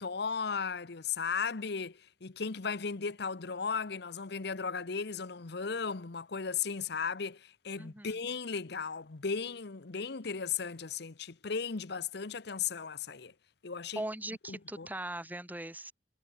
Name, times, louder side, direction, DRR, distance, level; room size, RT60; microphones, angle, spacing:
voice 1, 0.0-13.3 13.6-14.0 14.5-14.9, left 5 dB, 65° left, 0.9 m, -36 dB
voice 2, 7.8-8.1 14.0-15.9, right 1 dB, 10° right, 2.6 m, -40 dB
head